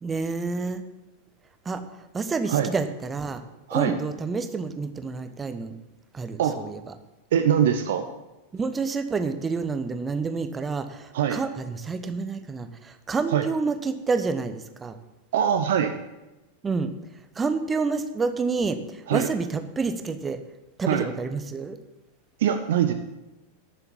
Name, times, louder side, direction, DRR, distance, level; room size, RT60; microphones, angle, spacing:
voice 1, 0.0-0.8 1.6-1.8 2.1-3.4 3.7-5.8 6.1-6.9 8.5-15.0 16.6-16.9 17.4-20.4 20.8-21.8, right 4 dB, 15° right, 9 dB, 0.9 m, -28 dB
voice 2, 7.3-8.0 11.1-11.4 13.3-13.5 15.3-16.0 19.1-19.3 20.9-21.1 22.4-22.9, right 9 dB, 55° right, 7 dB, 0.7 m, -22 dB
10.5 x 7.0 x 7.1 m, 1.0 s
figure-of-eight pair, 90°, 0 cm